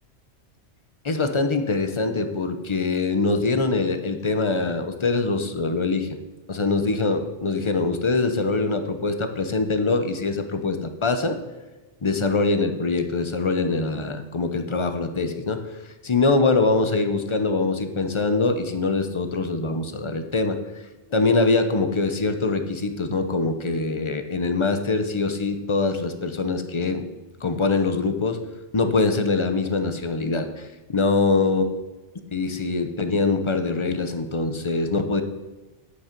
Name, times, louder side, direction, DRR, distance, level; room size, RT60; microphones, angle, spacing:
voice 1, 1.0-6.1 6.5-11.4 12.0-15.7 16.0-20.6 21.1-27.0 27.4-28.4 28.7-31.6 32.3-35.2, left 3 dB, 30° left, 8 dB, 0.7 m, -23 dB
8.5 x 8.3 x 5.2 m, 1.1 s
omnidirectional pair, 1.2 m